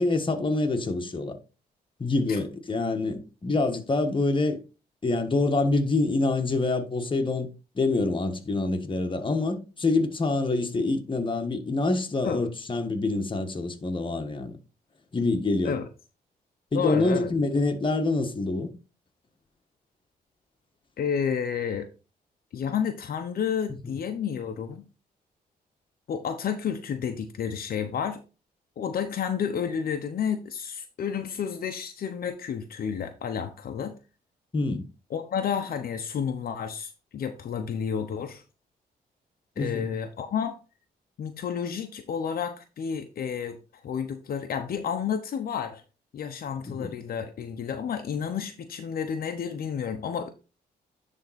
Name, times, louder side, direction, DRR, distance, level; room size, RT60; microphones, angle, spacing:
voice 1, 0.0-1.4 2.0-4.6 5.0-7.5 7.7-14.6 15.1-15.8 16.7-18.7 34.5-34.8 39.6-39.8 46.6-46.9, left 3 dB, 30° left, 1.4 m, -26 dB
voice 2, 16.7-17.3 21.0-21.9 22.5-24.8 26.1-28.2 28.8-33.9 35.1-38.4 39.6-40.6 41.2-43.6 43.8-45.8 46.1-50.3, left 7 dB, 65° left, 0.9 m, -30 dB
10.5 x 3.7 x 4.2 m
cardioid pair, 80°, 17 cm